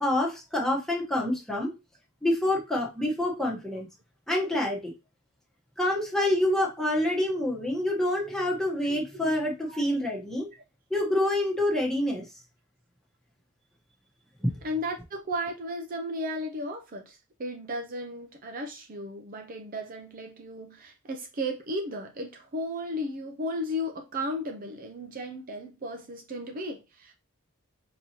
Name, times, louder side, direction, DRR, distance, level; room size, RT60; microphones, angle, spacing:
voice 1, 0.0-1.7 2.2-3.9 4.3-4.8 5.8-10.5 10.9-12.3 14.4-14.5, left 1 dB, ahead, 1.0 m, -27 dB
voice 2, 8.9-9.3 9.7-9.8 14.6-27.1, equal, 40° right, 0.5 m, -35 dB
5.2 x 2.9 x 2.8 m
head